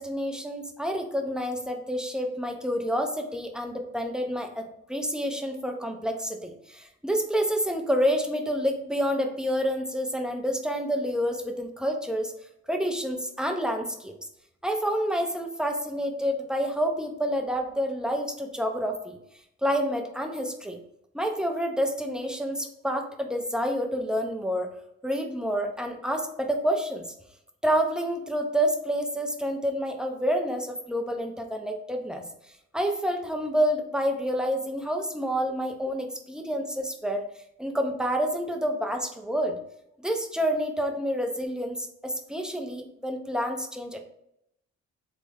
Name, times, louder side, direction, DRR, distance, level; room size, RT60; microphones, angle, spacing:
voice 1, 0.0-12.3 12.7-14.1 14.6-19.2 19.6-20.8 21.1-24.7 25.0-27.0 27.6-32.2 32.7-37.2 37.6-39.6 40.0-44.0, equal, 5° right, 3 dB, 0.5 m, -28 dB
3.4 x 2.1 x 3.3 m, 0.78 s
cardioid pair, 90°, 30 cm